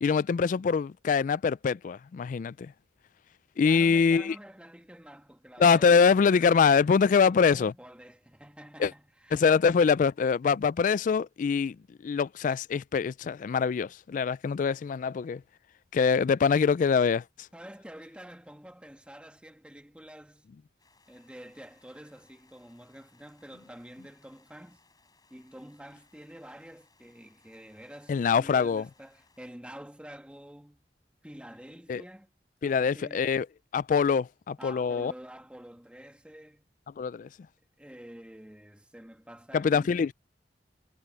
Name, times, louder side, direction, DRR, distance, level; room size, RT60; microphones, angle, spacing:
voice 1, 0.0-2.7 3.6-4.4 5.6-7.7 8.8-8.9 9.3-11.8 12.0-15.4 15.9-17.2 28.1-28.9 31.9-32.0 32.6-33.5 33.7-35.1 37.0-37.3 39.5-40.1, left 6 dB, 45° left, 0.3 m, -24 dB
voice 2, 3.6-6.1 7.1-9.4 17.5-20.4 21.1-24.8 25.3-30.8 31.2-32.3 32.6-33.3 34.6-36.6 37.8-40.0, equal, 5° right, 1.3 m, -48 dB
sound 1, 20.8-29.5, left 4 dB, 25° left, 5.3 m, -66 dB
head